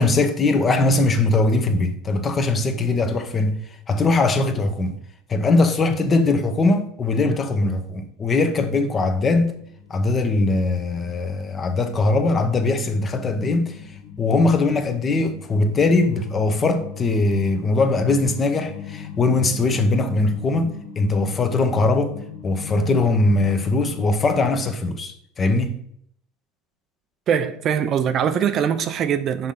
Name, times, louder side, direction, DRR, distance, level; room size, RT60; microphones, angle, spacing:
voice 1, 0.0-3.6 3.9-5.0 5.3-9.5 9.9-22.2 22.4-25.8, left 3 dB, 30° left, 1.0 m, -21 dB
sound 1, 8.0-24.7, left 7 dB, 75° left, 1.1 m, -39 dB
voice 2, 27.3-29.5, right 8 dB, 40° right, 0.5 m, -22 dB
5.6 x 3.7 x 5.7 m
hypercardioid pair, 80°, 0 cm